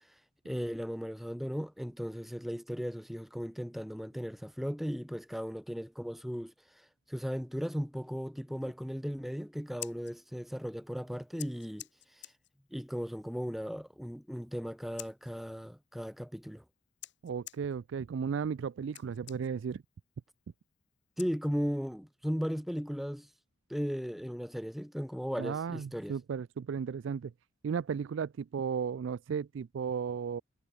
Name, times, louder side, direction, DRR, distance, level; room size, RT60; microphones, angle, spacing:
voice 1, 0.4-11.8 12.2-12.3 12.7-16.6 21.2-23.3 23.7-26.2, equal, ahead, 0.9 m, -36 dB
Scissors, 9.6-21.9, left 16 dB, 50° left, 1.5 m, -53 dB
voice 2, 17.2-19.8 25.4-27.3 27.6-30.4, right 6 dB, 55° right, 0.3 m, -35 dB
head